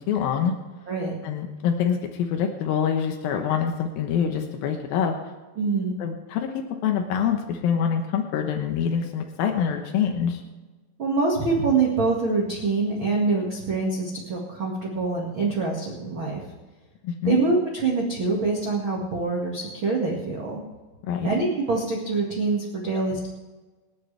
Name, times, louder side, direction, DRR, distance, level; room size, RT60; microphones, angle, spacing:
voice 1, 0.1-0.5 1.2-5.1 6.0-10.4 17.0-17.4 21.0-21.3, left 7 dB, 75° left, 3 dB, 2.2 m, -25 dB
voice 2, 5.6-6.0 11.0-16.4 17.2-20.6 21.2-23.3, right 3 dB, 55° right, -2 dB, 1.4 m, -25 dB
28.0 x 9.4 x 3.4 m, 1.3 s
omnidirectional pair, 5.6 m